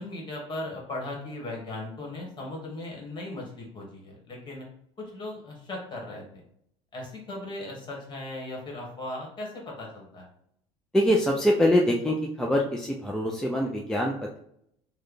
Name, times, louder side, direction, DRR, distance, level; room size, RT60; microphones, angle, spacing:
voice 1, 0.0-4.7 5.0-6.4 6.9-10.3, left 2 dB, 35° left, -1 dB, 1.4 m, -37 dB
voice 2, 10.9-14.4, equal, 5° left, -1 dB, 0.4 m, -24 dB
3.1 x 2.2 x 3.8 m, 0.72 s
supercardioid pair, 95°, 13 cm